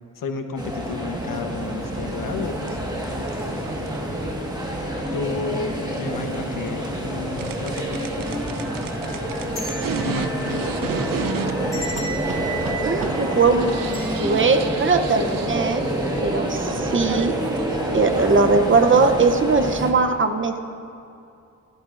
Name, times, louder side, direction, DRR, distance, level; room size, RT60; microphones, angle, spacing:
voice 1, 0.2-2.8 5.1-8.4 10.0-11.4, left 4 dB, 75° left, 6 dB, 1.0 m, -32 dB
sound 1, 0.6-19.9, equal, 10° right, 1.5 m, -27 dB
sound 2, 1.8-19.3, right 6 dB, 75° right, 0.6 m, -35 dB
sound 3, 8.6-15.8 16.1-16.2 17.2-17.5 17.8-18.0, right 3 dB, 10° left, 2.7 m, -38 dB
voice 2, 12.8-13.7 14.2-15.8 16.2-17.3 17.9-20.6, right 4 dB, 35° right, 7 dB, 0.7 m, -19 dB
27.5 x 12.5 x 2.5 m, 2.6 s
wide cardioid pair, 135°, 33 cm